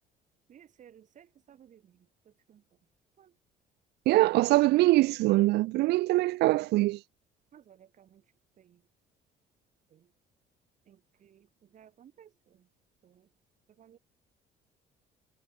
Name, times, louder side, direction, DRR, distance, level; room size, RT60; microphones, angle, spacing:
voice 1, 0.5-1.8 2.5-2.6 7.5-8.2 10.9-11.0 11.2-11.4 11.7-12.3 13.8-14.0, right 9 dB, 45° right, 1.2 m, -56 dB
voice 2, 4.1-7.0, right 19 dB, 80° right, 0.6 m, -23 dB
cardioid pair, 110°, 17 cm